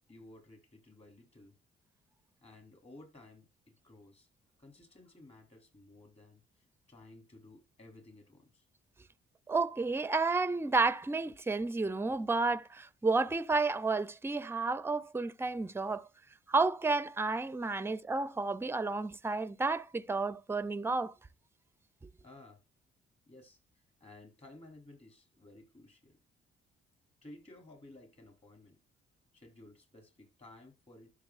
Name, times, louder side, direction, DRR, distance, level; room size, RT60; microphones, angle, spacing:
voice 1, 0.1-1.5 2.4-4.3 4.6-8.6 17.8-18.0 22.2-22.6 23.3-23.6 24.0-26.2 27.2-28.8 29.3-31.1, left 2 dB, 30° left, 3.5 m, -56 dB
voice 2, 9.5-16.1 16.5-21.1, right 3 dB, 10° right, 0.5 m, -31 dB
12.5 x 6.0 x 2.5 m
cardioid pair, 90°, 20 cm